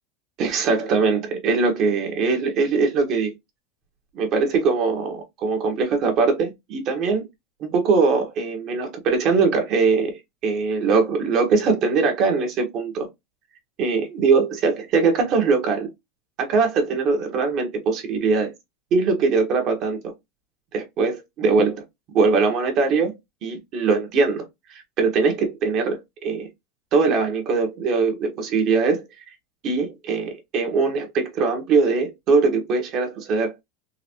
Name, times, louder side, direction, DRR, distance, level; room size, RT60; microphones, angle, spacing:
voice 1, 0.4-3.3 4.1-7.3 7.6-13.1 13.8-15.9 16.4-18.5 18.9-20.1 20.7-21.8 22.1-23.1 23.4-24.4 24.7-26.5 26.9-29.0 29.6-33.5, right 4 dB, 40° right, 1.1 m, -21 dB
3.9 x 2.6 x 2.8 m
supercardioid pair, 150°, 0 cm